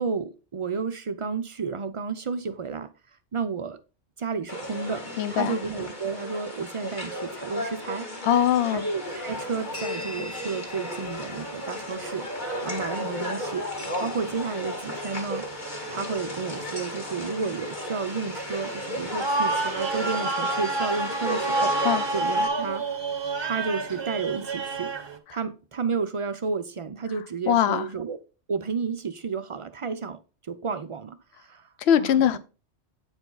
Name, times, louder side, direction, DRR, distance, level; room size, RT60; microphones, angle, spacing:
voice 1, 0.0-2.9 3.3-3.8 4.2-8.1 8.7-15.4 15.9-21.9 22.1-22.8 23.4-24.9 25.3-28.2 28.5-31.7 32.0-32.4, right 5 dB, 55° right, 0.3 m, -32 dB
sound 1, 4.5-22.5, left 1 dB, 40° left, 1.9 m, -34 dB
voice 2, 5.2-5.6 8.2-8.9 21.8-22.0 27.5-27.9 31.8-32.4, left 9 dB, 65° left, 0.9 m, -21 dB
sound 2, 9.1-25.2, right 3 dB, 30° right, 0.6 m, -32 dB
8.5 x 4.7 x 3.9 m
omnidirectional pair, 1.2 m